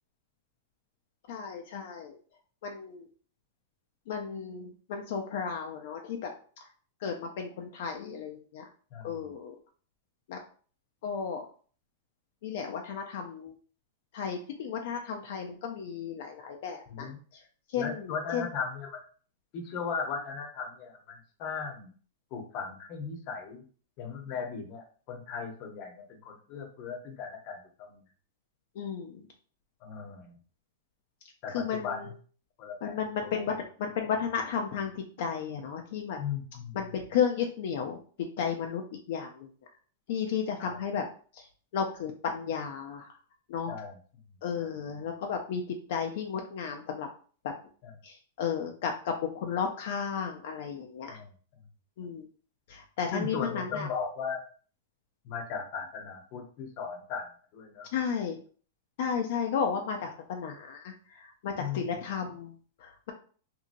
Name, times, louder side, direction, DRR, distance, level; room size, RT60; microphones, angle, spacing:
voice 1, 1.3-2.2 2.6-3.1 4.1-6.7 7.0-8.7 9.0-9.6 10.3-10.4 11.0-11.4 12.4-13.5 14.1-18.5 28.7-29.3 31.5-32.1 32.8-36.2 36.7-39.5 40.1-41.0 41.3-43.2 43.5-43.8 44.4-47.1 47.4-47.5 48.0-51.2 52.0-52.3 52.7-53.9 57.9-58.4 59.0-63.1, left 7 dB, 65° left, 3 dB, 0.5 m, -34 dB
voice 2, 8.9-9.3 16.9-17.1 17.8-19.0 19.5-21.9 22.3-23.6 24.0-28.0 29.8-30.3 31.4-32.0 32.6-33.0 36.2-36.8 40.6-40.8 43.7-43.9 44.6-44.7 47.8-47.9 51.1-51.2 53.1-54.4 55.2-57.3 57.5-57.9 61.6-61.8, left 5 dB, 45° left, 3 dB, 0.8 m, -37 dB
2.7 x 2.7 x 2.6 m, 0.42 s
hypercardioid pair, 130°, 0 cm